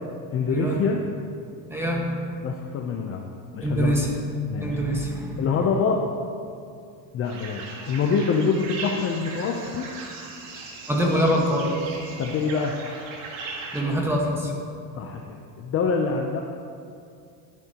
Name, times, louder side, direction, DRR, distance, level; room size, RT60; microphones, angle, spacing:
voice 1, 0.3-1.0 2.4-3.3 3.5-4.0 4.5-4.8 5.4-6.0 7.1-9.9 11.1-11.2 12.2-12.7 15.0-16.4, left 5 dB, 30° left, 1 dB, 0.6 m, -25 dB
voice 2, 1.7-2.2 3.6-4.2 4.6-5.5 10.9-11.7 13.7-14.5, equal, 5° right, -2 dB, 1.4 m, -24 dB
sound 1, 7.2-13.8, right 3 dB, 75° right, 1.8 m, -38 dB
12.0 x 10.5 x 2.9 m, 2.4 s
cardioid pair, 140°, 46 cm